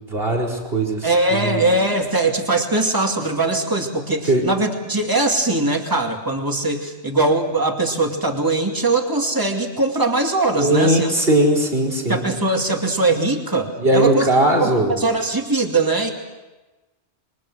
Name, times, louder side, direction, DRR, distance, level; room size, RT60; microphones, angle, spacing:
voice 1, 0.1-1.6 4.3-4.5 10.6-12.2 13.8-15.0, right 1 dB, 55° right, -1 dB, 4.8 m, -19 dB
voice 2, 1.0-11.1 12.1-14.3 14.6-16.1, right 2 dB, 20° right, 2 dB, 2.4 m, -21 dB
28.0 x 23.5 x 6.3 m, 1.1 s
omnidirectional pair, 1.2 m